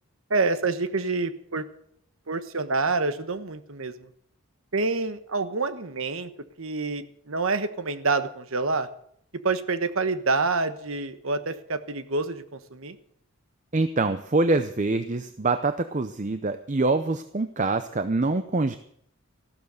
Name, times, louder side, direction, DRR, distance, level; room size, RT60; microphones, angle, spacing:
voice 1, 0.3-1.7 2.3-4.1 4.7-6.3 6.6-8.9 9.4-13.0, right 3 dB, 65° right, 11 dB, 1.2 m, -27 dB
voice 2, 13.7-18.8, right 3 dB, 35° right, 10 dB, 0.6 m, -25 dB
15.0 x 12.5 x 6.4 m, 0.67 s
head